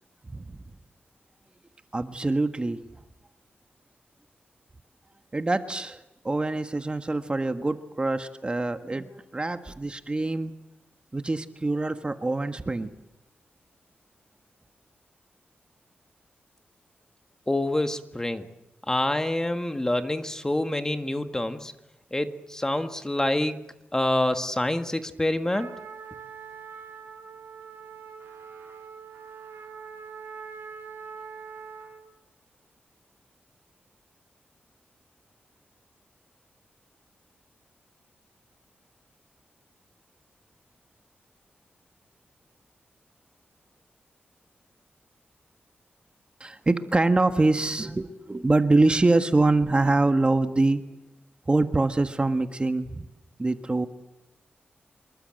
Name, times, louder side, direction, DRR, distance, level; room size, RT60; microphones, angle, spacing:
voice 1, 1.9-2.8 5.3-10.5 11.1-12.9 46.4-50.8 51.5-53.1 53.4-53.9, right 2 dB, 25° right, 8 dB, 1.5 m, -24 dB
voice 2, 17.5-18.5 18.9-21.7 22.1-23.6 23.9-25.7, left 1 dB, 15° left, 8 dB, 1.9 m, -26 dB
Trumpet, 25.5-32.1, right 6 dB, 90° right, 4.7 m, -43 dB
26.5 x 22.5 x 7.8 m, 0.94 s
wide cardioid pair, 90°, 4 cm